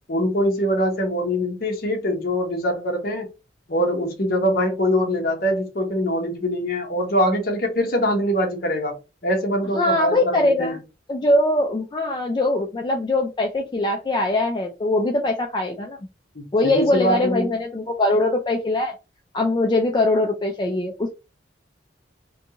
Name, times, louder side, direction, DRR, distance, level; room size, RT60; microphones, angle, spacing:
voice 1, 0.1-3.3 3.7-10.8 16.3-17.5, equal, 55° left, 0.8 m, -23 dB
voice 2, 9.7-10.8 11.1-16.0 16.5-18.9 19.3-21.1, left 2 dB, 25° left, 0.3 m, -22 dB
2.5 x 2.3 x 2.7 m
head